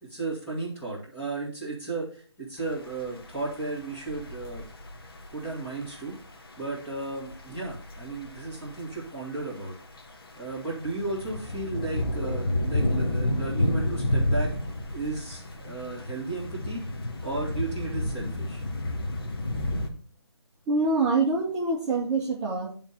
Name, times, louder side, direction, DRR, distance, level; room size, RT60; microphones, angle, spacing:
voice 1, 0.0-4.7 5.3-6.1 6.6-9.7 10.4-14.5 14.9-16.8 17.2-18.6, right 3 dB, 10° left, -6 dB, 1.9 m, -34 dB
sound 1, 2.6-19.9, left 1 dB, 55° left, 1.3 m, -31 dB
voice 2, 20.7-22.7, right 3 dB, 15° right, -5 dB, 0.8 m, -25 dB
10.0 x 3.7 x 4.3 m, 0.43 s
figure-of-eight pair, 160°, 14 cm